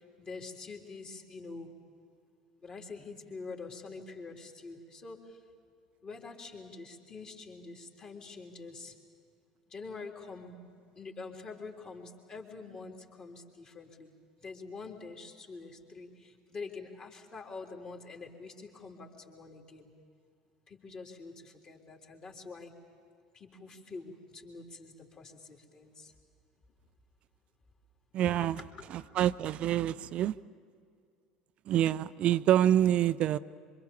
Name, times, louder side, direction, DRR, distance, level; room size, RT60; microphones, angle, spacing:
voice 1, 0.0-1.7 2.6-5.4 6.0-9.0 9.7-10.6 11.0-14.1 14.4-19.9 20.7-22.7 23.3-26.1 28.4-28.6, left 4 dB, 35° left, 1 dB, 3.6 m, -46 dB
voice 2, 28.1-28.6 28.9-30.3 31.7-33.4, right 11 dB, 45° right, 16 dB, 0.6 m, -26 dB
26.5 x 25.5 x 7.1 m, 2.3 s
figure-of-eight pair, 70°, 3 cm